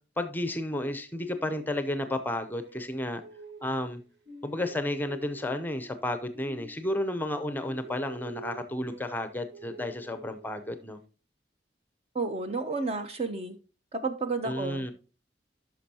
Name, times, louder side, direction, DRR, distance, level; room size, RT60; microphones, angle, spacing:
voice 1, 0.2-3.2 3.6-4.0 4.4-11.0 14.4-14.9, left 1 dB, 10° left, 0.6 m, -32 dB
sound 1, 1.2-3.9 4.3-7.2 7.5-11.0, right 2 dB, 70° right, 1.4 m, -48 dB
voice 2, 12.1-13.6 13.9-14.9, right 3 dB, 35° right, 0.7 m, -31 dB
9.9 x 6.1 x 2.8 m
head